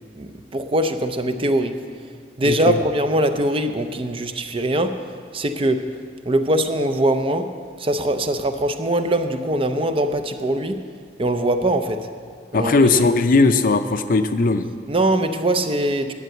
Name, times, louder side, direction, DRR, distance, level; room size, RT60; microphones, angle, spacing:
voice 1, 0.2-1.8 2.4-5.0 5.3-6.0 6.3-10.9 11.2-12.1 12.5-13.0 14.9-16.1, right 1 dB, 30° right, 8 dB, 0.6 m, -22 dB
voice 2, 2.4-2.8 12.5-14.7, left 3 dB, 50° left, 9 dB, 0.5 m, -18 dB
10.5 x 7.9 x 7.8 m, 2.2 s
head